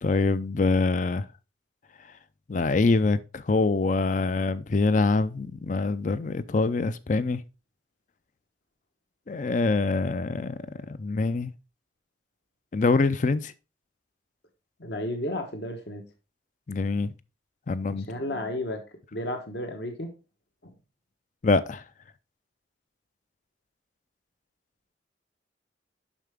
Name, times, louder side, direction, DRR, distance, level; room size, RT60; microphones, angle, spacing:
voice 1, 0.0-1.3 2.5-7.4 9.3-10.6 10.9-11.5 12.7-13.5 16.7-17.1 17.7-18.1 21.4-21.8, left 3 dB, 40° left, 0.4 m, -24 dB
voice 2, 14.8-16.0 17.9-18.8 19.1-20.1 20.6-20.7, left 1 dB, 60° left, 1.1 m, -33 dB
7.2 x 5.7 x 3.5 m
head